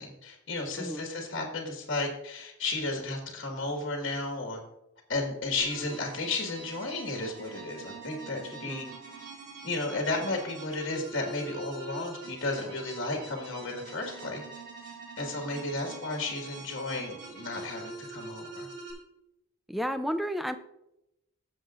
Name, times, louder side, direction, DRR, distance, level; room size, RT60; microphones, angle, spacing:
voice 1, 0.0-4.6 5.1-8.9 9.6-14.4 14.8-18.7, left 2 dB, 55° left, 1 dB, 1.6 m, -33 dB
sound 1, 5.6-18.9, right 3 dB, 50° right, 3.6 m, -45 dB
voice 2, 8.6-8.9 19.7-20.6, equal, ahead, 9 dB, 0.4 m, -32 dB
14.5 x 7.3 x 2.5 m, 0.85 s
head